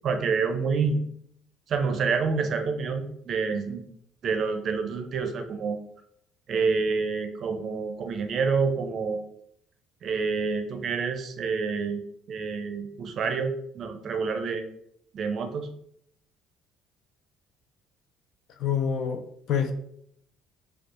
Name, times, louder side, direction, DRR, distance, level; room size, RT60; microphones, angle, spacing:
voice 1, 0.0-1.0 1.7-3.8 4.2-5.8 6.5-9.2 10.0-12.0 12.3-14.6 15.1-15.7, right 5 dB, 45° right, 7 dB, 0.5 m, -28 dB
voice 2, 18.6-19.7, left 7 dB, 55° left, 7 dB, 0.5 m, -27 dB
4.3 x 2.3 x 3.1 m, 0.72 s
cardioid pair, 125°, 0 cm